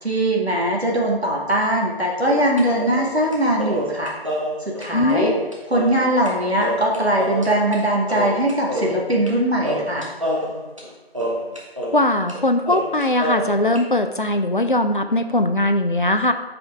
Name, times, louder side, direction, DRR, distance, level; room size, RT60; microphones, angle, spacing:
voice 1, 0.0-4.1 4.7-5.3 5.7-10.1, right 1 dB, 80° right, -1 dB, 1.9 m, -21 dB
sound 1, 2.2-6.3 6.6-7.8 8.1-9.4 9.6-12.0 12.3-12.4 12.7-13.8, equal, 30° right, 0.9 m, -27 dB
voice 2, 4.9-5.4 11.9-16.3, left 1 dB, 55° left, 8 dB, 0.5 m, -20 dB
7.6 x 5.0 x 3.7 m, 1.1 s
figure-of-eight pair, 170°, 31 cm